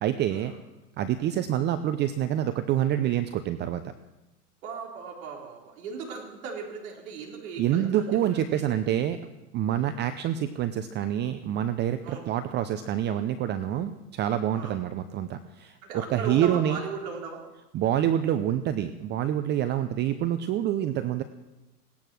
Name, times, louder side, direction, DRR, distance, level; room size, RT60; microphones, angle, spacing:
voice 1, 0.0-0.5 1.0-3.8 7.6-9.2 9.5-16.8 17.7-21.2, right 11 dB, 25° right, 11 dB, 0.6 m, -27 dB
voice 2, 4.6-8.7 9.8-10.0 12.0-12.3 14.5-14.8 15.8-17.4 19.7-19.8, right 5 dB, 60° right, -1 dB, 4.1 m, -38 dB
18.0 x 11.0 x 6.3 m, 1.0 s
hypercardioid pair, 110°, 47 cm